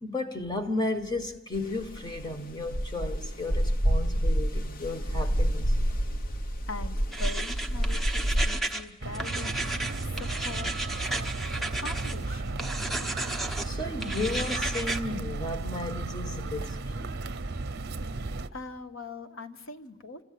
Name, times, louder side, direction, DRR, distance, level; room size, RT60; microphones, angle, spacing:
voice 1, 0.0-5.8 13.6-17.1, left 2 dB, 20° left, 1.4 m, -34 dB
sound 1, 1.5-8.5, equal, 45° left, 0.9 m, -28 dB
voice 2, 6.7-9.7 10.0-10.7 11.6-12.7 18.1-18.2 18.5-20.2, left 3 dB, 70° left, 1.2 m, -42 dB
sound 2, 7.1-8.8 9.1-12.1 12.6-13.7 14.0-15.0, right 2 dB, ahead, 0.9 m, -33 dB
sound 3, 9.0-18.5, right 2 dB, 55° right, 0.8 m, -34 dB
25.5 x 14.5 x 8.5 m
head